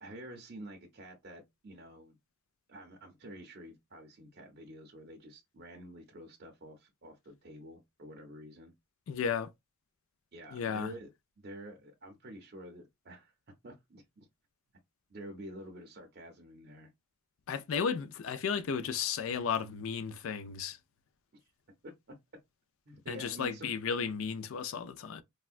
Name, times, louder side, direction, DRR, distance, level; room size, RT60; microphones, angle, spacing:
voice 1, 0.0-2.2 2.7-8.7 10.3-11.1 11.4-14.3 15.1-16.9 21.8-22.4 22.9-23.7, right 1 dB, 45° right, 0.6 m, -49 dB
voice 2, 9.1-9.5 10.5-10.9 17.5-20.8 23.1-25.2, left 6 dB, 65° left, 0.4 m, -34 dB
3.5 x 2.1 x 2.4 m
head